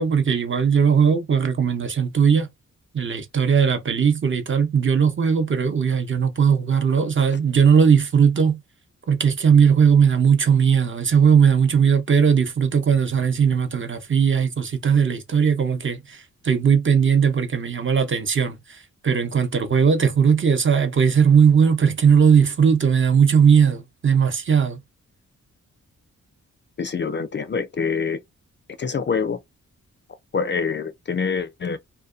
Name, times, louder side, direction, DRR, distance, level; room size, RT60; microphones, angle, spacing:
voice 1, 0.0-2.5 2.9-8.6 9.1-24.8, right 7 dB, 40° right, 0.7 m, -18 dB
voice 2, 26.8-28.2 28.8-29.4 30.3-31.8, left 5 dB, 40° left, 0.4 m, -25 dB
2.6 x 2.2 x 2.4 m
cardioid pair, 75°, 30 cm